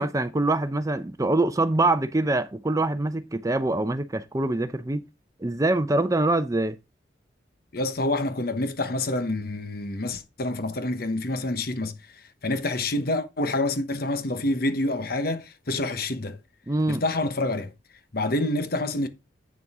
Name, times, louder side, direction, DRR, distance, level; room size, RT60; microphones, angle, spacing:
voice 1, 0.0-5.1 5.4-6.8 16.7-17.0, right 2 dB, 20° right, 0.6 m, -24 dB
voice 2, 7.7-11.9 12.4-16.4 16.9-17.7 18.1-19.1, left 2 dB, 55° left, 1.1 m, -27 dB
8.7 x 6.9 x 3.6 m
head